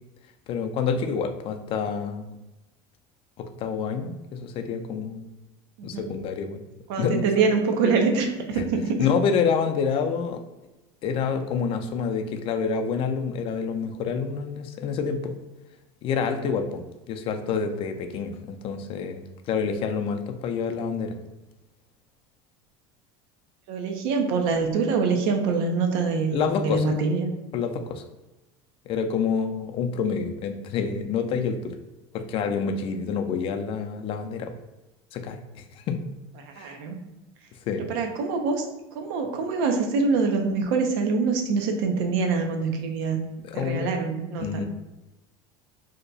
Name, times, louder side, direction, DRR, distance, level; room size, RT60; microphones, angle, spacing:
voice 1, 0.5-2.3 3.4-5.2 5.8-6.6 7.0-7.3 8.6-8.7 9.0-10.4 11.0-15.3 16.0-16.8 17.1-21.2 26.3-26.9 27.5-28.0 28.9-31.8 32.1-34.5 35.1-36.0 36.6-36.8 37.7-37.9 43.4-43.9 44.4-44.6, left 6 dB, 45° left, 7 dB, 0.4 m, -27 dB
voice 2, 6.9-9.0 23.7-27.3 36.4-37.0 37.9-38.6 38.9-43.2 43.5-44.6, right 4 dB, 75° right, 4 dB, 0.6 m, -25 dB
2.8 x 2.3 x 3.8 m, 1.0 s
supercardioid pair, 120°, 13 cm